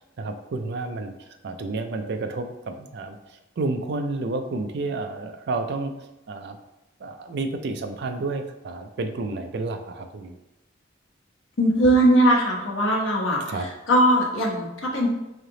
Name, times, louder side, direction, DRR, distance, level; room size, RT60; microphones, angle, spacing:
voice 1, 0.2-5.9 6.3-6.6 7.0-10.4 13.5-13.7, right 3 dB, 60° right, 6 dB, 0.4 m, -30 dB
voice 2, 11.6-13.4 13.9-15.1, right 1 dB, 85° left, -1 dB, 1.0 m, -19 dB
3.3 x 2.8 x 3.7 m, 0.96 s
head